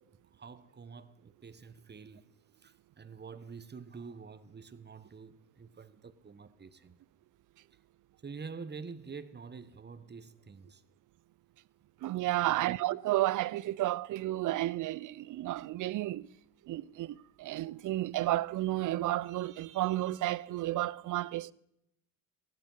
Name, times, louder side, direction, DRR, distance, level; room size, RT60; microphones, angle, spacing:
voice 1, 0.3-7.0 7.7-7.8 8.2-10.8 12.4-12.7, right 5 dB, 20° right, 1.2 m, -47 dB
voice 2, 12.0-16.3 16.7-21.5, right 16 dB, 45° right, 0.6 m, -32 dB
15.5 x 12.0 x 5.6 m
hypercardioid pair, 70°, 45 cm